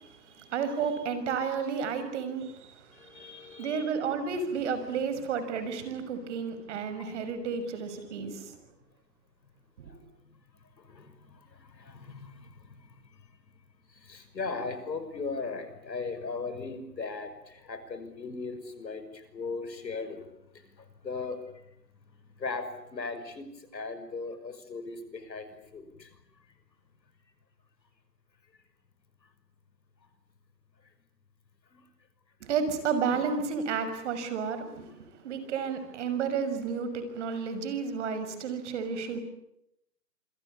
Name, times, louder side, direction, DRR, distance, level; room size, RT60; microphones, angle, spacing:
voice 1, 0.0-8.6 9.8-9.9 32.4-35.0 35.2-39.2, right 6 dB, 45° right, 11 dB, 6.3 m, -32 dB
voice 2, 2.9-3.9 9.8-10.0 10.5-13.0 13.9-20.3 20.5-21.6 22.4-26.2 31.7-31.8, left 4 dB, 85° left, 10 dB, 6.3 m, -38 dB
27.5 x 23.0 x 8.8 m, 0.80 s
hypercardioid pair, 150°, 49 cm